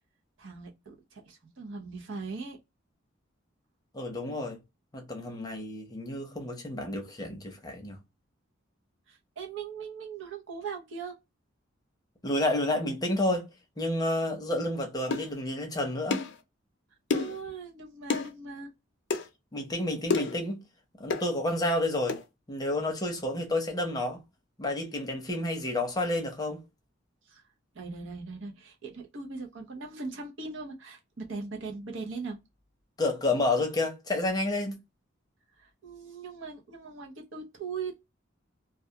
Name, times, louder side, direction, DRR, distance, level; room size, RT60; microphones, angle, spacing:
voice 1, 0.4-2.6 9.1-11.2 17.1-18.7 27.3-27.4 27.7-32.4 35.6-38.0, right 4 dB, 70° right, 0.7 m, -40 dB
voice 2, 3.9-4.6 4.9-8.0 12.2-13.5 13.8-16.2 19.5-20.6 21.0-22.2 22.5-24.2 24.6-26.6 33.0-34.8, left 1 dB, 20° left, 0.7 m, -30 dB
sound 1, 15.1-15.3 16.1-16.4 17.1-17.4 18.1-18.3 19.1-19.3 20.1-20.4 21.1-21.3 22.1-22.2, left 4 dB, 65° left, 0.5 m, -29 dB
2.3 x 2.3 x 2.7 m
head